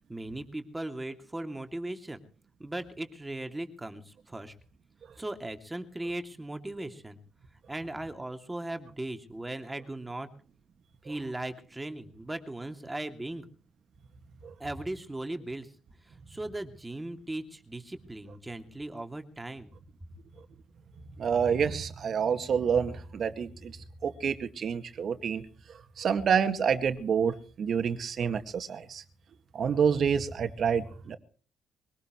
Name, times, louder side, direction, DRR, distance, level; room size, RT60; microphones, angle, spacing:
voice 1, 0.1-2.2 2.6-4.5 5.2-7.2 7.7-10.3 11.0-13.5 14.6-15.7 16.0-19.7, right 1 dB, 15° right, 7 dB, 2.7 m, -38 dB
voice 2, 21.2-23.8 24.0-25.4 26.0-29.0 29.5-31.2, right 7 dB, 55° right, 9 dB, 2.0 m, -28 dB
23.5 x 18.5 x 3.2 m, 0.42 s
cardioid pair, 90°, 0 cm